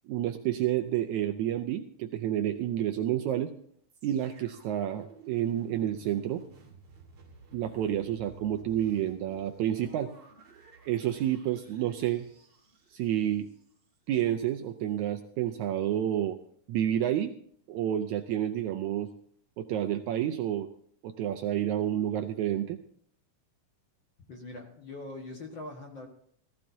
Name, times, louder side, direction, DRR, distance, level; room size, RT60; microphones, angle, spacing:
voice 1, 0.1-3.5 4.0-6.4 7.5-10.1 10.9-12.3 12.9-13.5 14.1-16.4 16.7-17.3 17.7-19.1 19.6-20.7 21.0-22.8, right 11 dB, 80° right, 6 dB, 1.8 m, -29 dB
sound 1, 3.9-14.0 14.6-14.7, right 5 dB, 35° right, 2.7 m, -54 dB
voice 2, 24.3-26.1, left 2 dB, 45° left, 1 dB, 1.8 m, -42 dB
18.0 x 15.0 x 2.8 m, 0.62 s
omnidirectional pair, 3.8 m